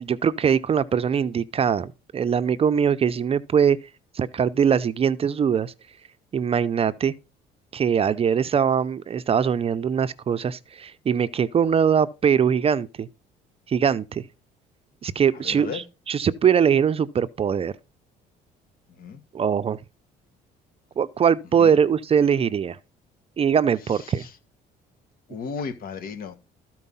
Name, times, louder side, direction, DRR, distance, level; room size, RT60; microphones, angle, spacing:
voice 1, 0.0-3.8 4.1-5.7 6.3-7.1 7.7-13.1 13.7-14.2 15.0-15.8 16.1-17.7 19.3-19.8 21.0-22.8 23.4-24.3, right 7 dB, 35° right, 0.6 m, -22 dB
voice 2, 15.3-15.8 18.9-19.2 21.6-21.8 23.8-24.4 25.3-26.4, left 5 dB, 60° left, 1.7 m, -35 dB
13.5 x 4.6 x 5.5 m
cardioid pair, 110°, 17 cm